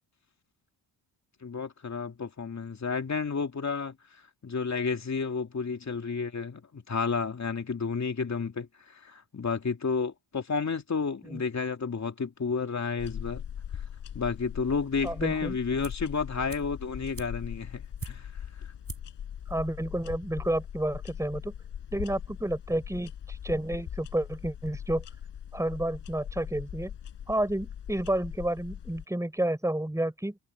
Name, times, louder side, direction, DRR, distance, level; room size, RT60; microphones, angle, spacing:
voice 1, 1.4-4.0 4.4-13.4 14.1-18.3 18.6-18.7, left 5 dB, 35° left, 2.7 m, -31 dB
sound 1, 13.0-29.0, left 9 dB, 65° left, 4.6 m, -41 dB
voice 2, 15.0-15.6 19.5-21.5 21.9-25.0 25.5-26.9 27.3-30.4, right 1 dB, 5° right, 6.7 m, -30 dB
sound 2, 15.8-16.1 16.5-18.5 18.8-19.2 19.5-19.6, right 4 dB, 30° right, 6.0 m, -44 dB
cardioid pair, 75°, 47 cm